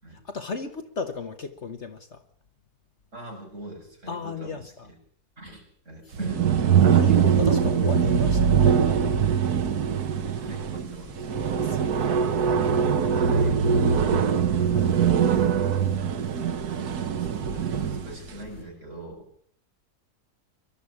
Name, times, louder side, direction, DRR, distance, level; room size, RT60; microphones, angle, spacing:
voice 1, 0.1-2.2 4.1-4.9 6.1-6.2 6.8-9.2 11.5-12.2 12.7-12.9 14.6-15.0, left 4 dB, 50° left, 1.5 m, -36 dB
voice 2, 3.1-4.9 5.4-6.5 10.4-11.3 12.8-14.2 17.2-19.3, right 2 dB, 50° right, 7.4 m, -41 dB
sound 1, 6.1-18.1, right 7 dB, 80° right, 1.5 m, -22 dB
sound 2, 7.1-18.6, left 4 dB, 85° left, 8.8 m, -45 dB
22.5 x 12.5 x 9.9 m
omnidirectional pair, 1.6 m